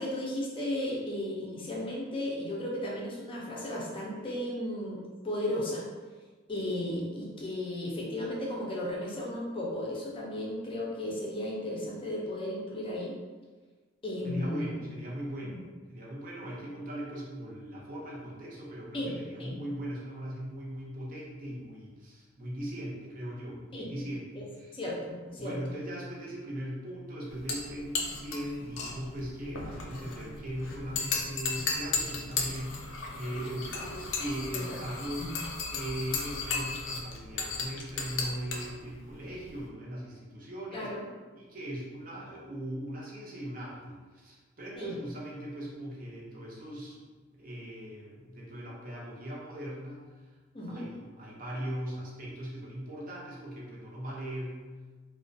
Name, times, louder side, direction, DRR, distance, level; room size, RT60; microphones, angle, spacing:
voice 1, 0.0-5.0 5.2-5.8 6.5-13.2 14.0-14.8 15.4-15.6 18.9-19.1 19.4-19.5 23.7-23.9 24.4-24.5 24.7-25.6 34.5-34.8 35.2-35.3 40.7-41.1 44.8-44.9 50.5-50.9, left 1 dB, 30° left, -4 dB, 0.4 m, -35 dB
voice 2, 14.2-15.6 15.9-24.7 25.4-35.3 35.7-40.9 41.3-47.0 47.3-50.3 50.7-54.7, equal, 45° right, -5 dB, 0.6 m, -39 dB
sound 1, 27.3-39.7, left 4 dB, 90° left, 0.4 m, -36 dB
2.3 x 2.1 x 2.5 m, 1.4 s
head